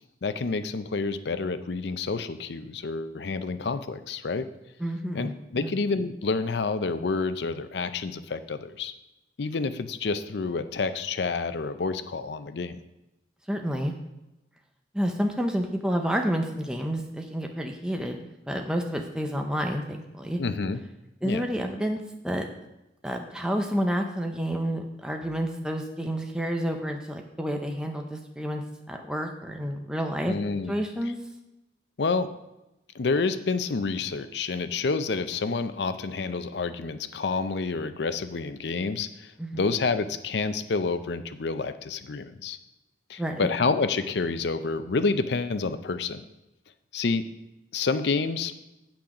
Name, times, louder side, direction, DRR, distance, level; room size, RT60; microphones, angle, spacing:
voice 1, 0.2-4.5 5.1-8.9 9.4-12.8 20.4-20.8 21.2-21.5 30.3-30.8 32.0-32.3 32.9-42.6 43.1-46.2 46.9-47.2 47.7-48.5, left 4 dB, 70° left, 11 dB, 0.5 m, -28 dB
voice 2, 4.8-5.8 13.5-13.9 14.9-20.4 21.2-22.5 23.0-28.6 28.9-30.3 30.7-31.2 39.4-39.6 43.2-43.5, equal, 5° right, 3 dB, 0.6 m, -29 dB
8.6 x 6.1 x 4.9 m, 0.95 s
head